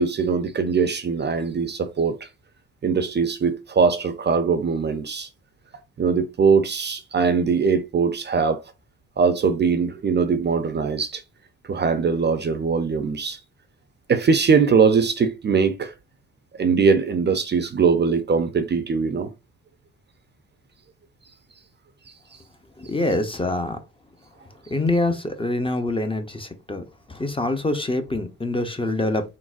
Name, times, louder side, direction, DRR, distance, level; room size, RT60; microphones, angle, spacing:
voice 1, 0.0-2.3 2.8-5.3 6.0-8.6 9.2-11.2 11.7-13.4 14.1-15.9 16.6-19.3, right 5 dB, 35° right, 0.5 m, -21 dB
voice 2, 22.8-23.8 24.7-26.8 27.2-29.2, left 2 dB, 15° left, 0.6 m, -25 dB
3.8 x 2.1 x 2.4 m
supercardioid pair, 70°, 32 cm